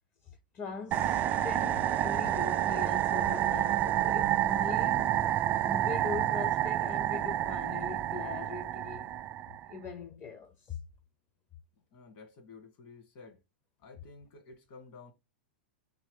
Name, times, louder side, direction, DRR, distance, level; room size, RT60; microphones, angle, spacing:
voice 1, 0.2-5.2 5.7-9.1 9.7-10.8, left 5 dB, 30° left, 0.6 m, -41 dB
sound 1, 0.9-9.7, right 12 dB, 30° right, 0.4 m, -29 dB
voice 2, 11.9-13.4 13.8-15.1, left 4 dB, 50° left, 2.0 m, -52 dB
3.7 x 3.0 x 3.6 m
hypercardioid pair, 105°, 6 cm